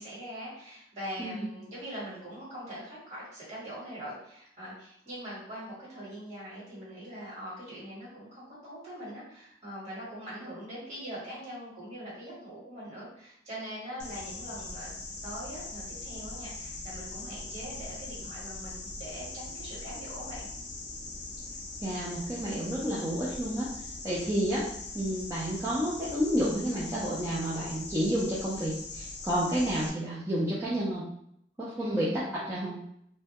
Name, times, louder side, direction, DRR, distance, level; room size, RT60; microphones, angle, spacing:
voice 1, 0.0-20.5 31.8-32.7, equal, 40° right, -8 dB, 1.2 m, -42 dB
sound 1, 14.0-29.9, left 3 dB, 65° left, 0.5 m, -41 dB
voice 2, 21.8-23.7 24.0-24.6 24.9-31.0 31.6-32.8, equal, 15° right, -9 dB, 0.4 m, -30 dB
2.1 x 2.1 x 2.7 m, 0.73 s
head